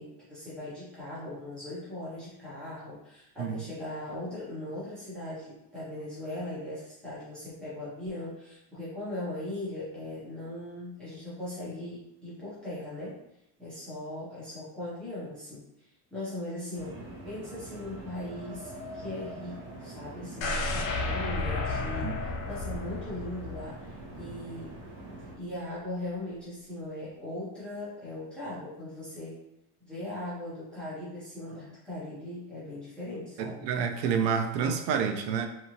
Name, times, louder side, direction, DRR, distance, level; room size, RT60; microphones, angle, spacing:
voice 1, 0.0-13.2 13.6-24.8 25.4-29.4 29.8-33.6, left 1 dB, ahead, -11 dB, 0.3 m, -39 dB
sound 1, 16.7-25.3, right 2 dB, 40° right, 0.9 m, -44 dB
sound 2, 20.4-24.4 24.7-24.8, left 3 dB, 70° left, 0.7 m, -32 dB
voice 2, 33.4-35.5, right 6 dB, 85° right, 6 dB, 0.6 m, -28 dB
2.7 x 2.5 x 2.8 m, 0.84 s
supercardioid pair, 160°, 49 cm